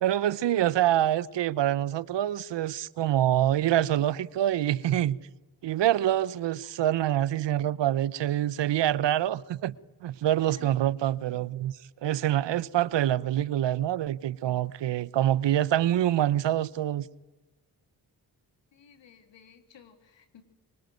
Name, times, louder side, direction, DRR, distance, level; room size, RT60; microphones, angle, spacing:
voice 1, 0.0-5.2 5.6-9.7 10.0-11.7 12.0-17.1, right 12 dB, 65° right, 1.0 m, -26 dB
voice 2, 18.7-20.4, left 8 dB, 70° left, 3.5 m, -55 dB
25.0 x 24.5 x 9.4 m
hypercardioid pair, 40°, 46 cm